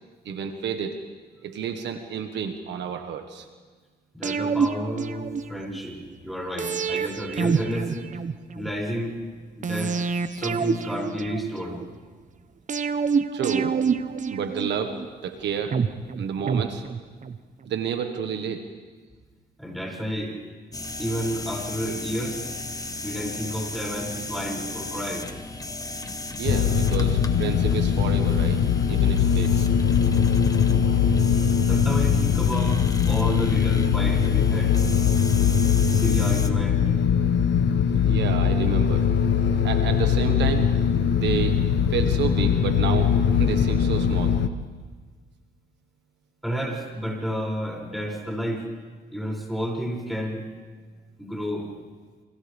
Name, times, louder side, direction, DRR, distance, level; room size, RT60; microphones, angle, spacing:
voice 1, 0.2-1.0 1.4-3.5 13.3-13.7 14.3-15.0 15.2-15.8 16.2-16.8 17.6-18.6 26.4-28.6 28.9-29.7 38.0-39.1 39.6-40.7 41.2-41.6 41.9-44.4, right 7 dB, 80° right, 6 dB, 1.5 m, -30 dB
voice 2, 4.1-8.2 8.5-9.2 9.6-10.0 10.3-11.8 16.2-16.3 19.6-20.4 21.0-22.4 23.0-25.3 31.6-34.8 35.8-36.9 46.4-48.7 49.1-50.5 51.2-51.7, equal, ahead, -1 dB, 6.7 m, -31 dB
sound 1, 4.2-5.8 6.6-8.7 9.6-11.9 12.7-15.1 15.7-17.4 17.7-17.8, right 5 dB, 45° right, 1.0 m, -27 dB
sound 2, 20.7-36.5, left 2 dB, 20° left, 1.4 m, -36 dB
sound 3, 26.4-44.5, left 7 dB, 70° left, 1.1 m, -21 dB
29.0 x 26.0 x 3.6 m, 1.5 s
cardioid pair, 80°, 18 cm